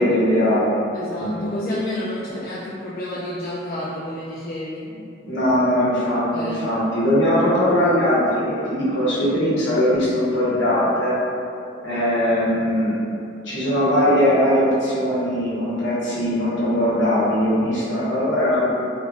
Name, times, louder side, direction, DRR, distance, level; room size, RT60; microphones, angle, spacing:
voice 1, 0.0-0.8 1.1-1.5 5.2-11.2 11.8-13.0 13.4-18.6, equal, 75° left, -9 dB, 1.0 m, -20 dB
voice 2, 0.9-4.8 6.3-6.6, left 1 dB, 50° left, -7 dB, 0.3 m, -30 dB
3.3 x 2.5 x 2.4 m, 2.6 s
head